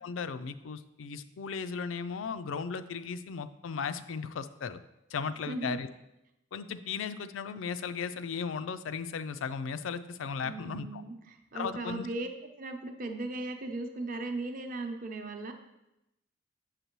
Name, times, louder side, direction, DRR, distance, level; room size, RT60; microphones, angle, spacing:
voice 1, 0.0-4.8 5.1-5.9 6.5-11.0 11.5-12.1, left 5 dB, 80° left, 11 dB, 0.4 m, -36 dB
voice 2, 5.5-5.8 10.4-12.3 12.6-15.5, right 2 dB, 45° right, 4 dB, 0.7 m, -37 dB
7.2 x 6.6 x 3.0 m, 0.89 s
head